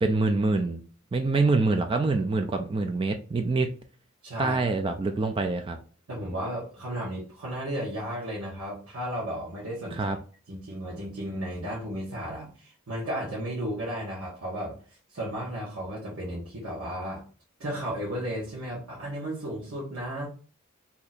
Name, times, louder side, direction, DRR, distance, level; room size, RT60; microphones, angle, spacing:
voice 1, 0.0-0.8 1.1-3.7 4.4-5.8 9.9-10.2, right 3 dB, 25° right, 6 dB, 0.3 m, -25 dB
voice 2, 4.2-4.6 6.1-10.1 10.5-14.8 15.1-17.2 17.6-20.3, equal, 75° right, -7 dB, 1.1 m, -34 dB
2.8 x 2.4 x 4.1 m, 0.39 s
head